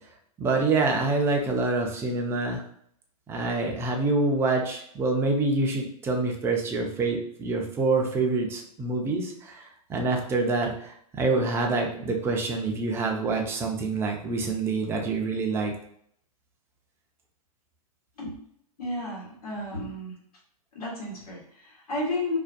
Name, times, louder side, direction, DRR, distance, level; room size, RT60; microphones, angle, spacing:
voice 1, 0.4-2.6 3.3-15.7, right 3 dB, 15° right, 2 dB, 0.3 m, -26 dB
voice 2, 18.8-20.2 20.7-22.4, left 2 dB, 85° left, -3 dB, 1.1 m, -32 dB
2.4 x 2.1 x 2.5 m, 0.68 s
hypercardioid pair, 135°, 19 cm